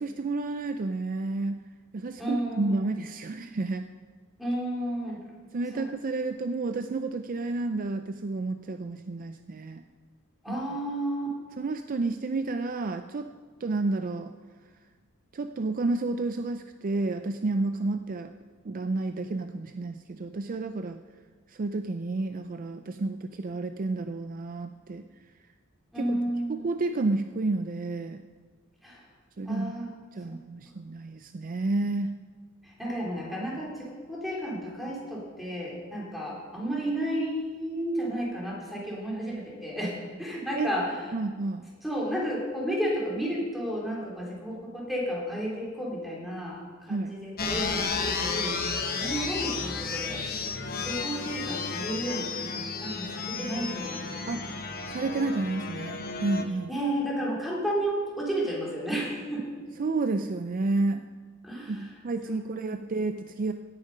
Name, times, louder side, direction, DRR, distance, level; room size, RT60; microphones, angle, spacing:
voice 1, 0.0-1.6 1.9-3.9 5.5-9.8 10.5-10.6 11.6-13.3 13.6-14.3 15.3-18.3 18.6-21.0 21.5-25.0 26.0-26.2 26.5-28.2 29.4-29.8 30.1-32.2 40.6-40.7 41.1-41.7 46.9-47.1 54.3-54.5 54.9-56.7 59.8-61.0 61.7-63.5, right 3 dB, 40° right, 8 dB, 0.4 m, -30 dB
voice 2, 2.2-2.9 4.4-5.2 5.7-5.9 10.4-11.3 25.9-26.6 28.8-29.1 29.4-29.9 30.3-30.4 32.6-41.0 41.8-54.6 56.7-59.5 61.4-61.9 62.2-62.9, right 1 dB, ahead, -5 dB, 3.7 m, -32 dB
sound 1, 47.4-56.4, left 4 dB, 45° left, 1.2 m, -32 dB
17.0 x 8.9 x 5.5 m, 1.5 s
head